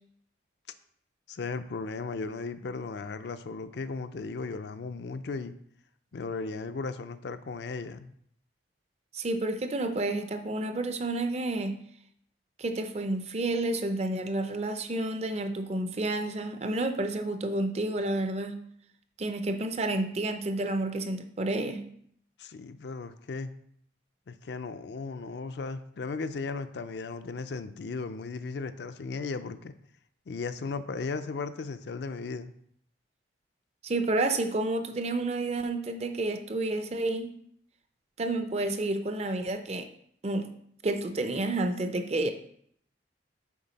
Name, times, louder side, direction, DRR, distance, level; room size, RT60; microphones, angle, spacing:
voice 1, 1.3-5.5 6.1-8.1 22.4-23.5 24.3-29.7 30.3-32.5, left 4 dB, 65° left, 11 dB, 0.4 m, -36 dB
voice 2, 9.1-11.7 12.6-18.6 19.2-21.8 33.8-37.3 38.2-39.9 40.2-40.5 40.8-42.3, right 2 dB, 35° right, 8 dB, 0.5 m, -30 dB
7.3 x 4.4 x 4.0 m, 0.68 s
head